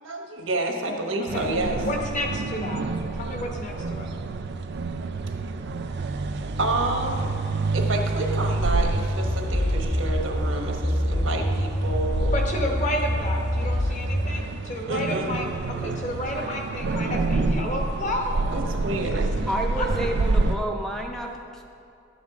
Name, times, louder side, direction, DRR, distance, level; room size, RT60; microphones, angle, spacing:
voice 1, 0.0-1.8 3.2-3.3 6.6-7.3 7.7-12.3 14.9-15.3 18.5-19.3, right 2 dB, 85° right, 2 dB, 1.1 m, -29 dB
sound 1, 1.3-20.6, right 3 dB, 55° right, 0.4 m, -28 dB
voice 2, 1.8-2.8 3.1-4.1 12.3-18.5 19.8-19.9, left 1 dB, 40° left, 1 dB, 1.0 m, -30 dB
sound 2, 8.9-14.3, left 1 dB, 55° left, 1.3 m, -26 dB
voice 3, 19.5-21.6, right 1 dB, ahead, 1 dB, 0.5 m, -30 dB
11.0 x 7.4 x 3.6 m, 2.6 s
head